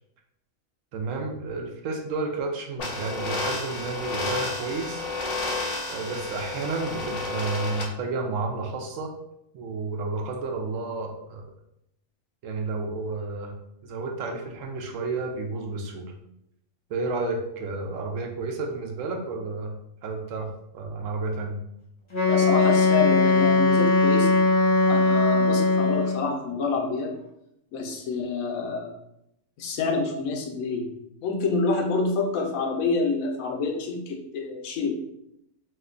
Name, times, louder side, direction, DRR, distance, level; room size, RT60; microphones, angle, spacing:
voice 1, 0.9-5.1 5.9-9.1 9.5-11.5 12.4-13.5 13.8-16.1 16.9-19.7 20.0-20.5 20.7-21.6, right 3 dB, 75° right, 2 dB, 1.0 m, -31 dB
sound 1, 2.8-7.8, left 3 dB, 70° left, 1.2 m, -31 dB
Wind instrument woodwind instrument, 22.1-26.3, left 3 dB, 35° left, 0.5 m, -20 dB
voice 2, 22.3-24.4 24.9-27.1 27.7-28.9 29.6-30.9 31.2-35.0, left 4 dB, 90° left, 2 dB, 1.1 m, -27 dB
2.9 x 2.2 x 3.6 m, 0.81 s
omnidirectional pair, 1.4 m